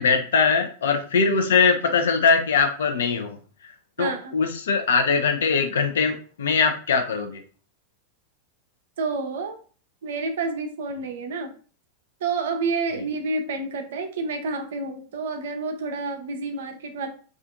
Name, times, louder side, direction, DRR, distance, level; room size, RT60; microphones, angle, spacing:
voice 1, 0.0-3.4 3.6-7.4, left 5 dB, 65° left, 5 dB, 0.5 m, -22 dB
voice 2, 4.0-4.4 9.0-9.6 10.0-11.5 12.2-17.1, right 3 dB, 60° right, 5 dB, 0.4 m, -29 dB
2.5 x 2.4 x 2.4 m, 0.40 s
figure-of-eight pair, 90°, 0 cm